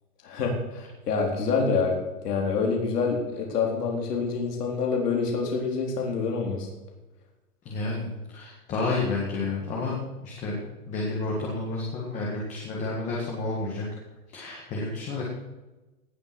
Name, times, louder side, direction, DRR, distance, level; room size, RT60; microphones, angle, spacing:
voice 1, 0.2-2.0 2.2-6.7, left 4 dB, 75° left, 0 dB, 4.0 m, -26 dB
voice 2, 7.7-10.0 10.2-10.6 10.9-13.8 14.3-15.2, left 3 dB, 15° left, -3 dB, 1.8 m, -30 dB
18.0 x 7.1 x 6.1 m, 1.1 s
hypercardioid pair, 175°, 47 cm